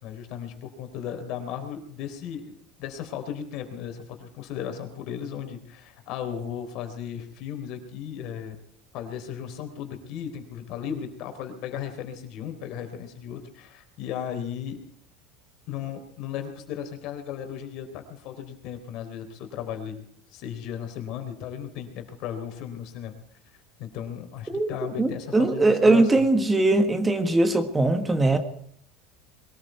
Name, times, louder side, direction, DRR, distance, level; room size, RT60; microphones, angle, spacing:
voice 1, 0.0-8.6 8.9-14.8 15.7-20.0 20.3-23.1 23.8-26.3, left 9 dB, 60° left, 6 dB, 3.8 m, -36 dB
voice 2, 25.0-28.4, right 2 dB, 10° right, 9 dB, 1.5 m, -21 dB
22.0 x 14.0 x 4.6 m, 0.63 s
supercardioid pair, 135°, 0 cm